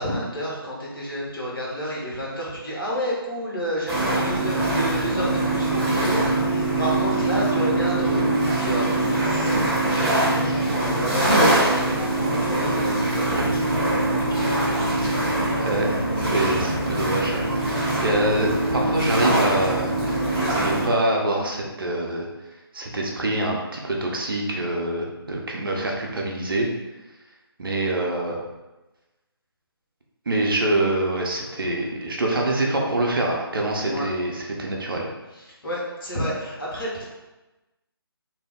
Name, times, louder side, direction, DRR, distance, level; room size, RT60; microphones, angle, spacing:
voice 1, 0.0-9.0 9.2-14.6 33.8-34.1 35.3-37.0, equal, 60° left, -5 dB, 1.2 m, -30 dB
sound 1, 3.9-20.9, right 1 dB, 5° right, 0.4 m, -23 dB
voice 2, 15.5-16.0 16.3-20.0 20.5-22.3 22.7-26.7 27.6-28.4 30.3-35.1, right 1 dB, 60° right, -1 dB, 0.6 m, -25 dB
2.7 x 2.1 x 3.5 m, 1.1 s
figure-of-eight pair, 150°, 13 cm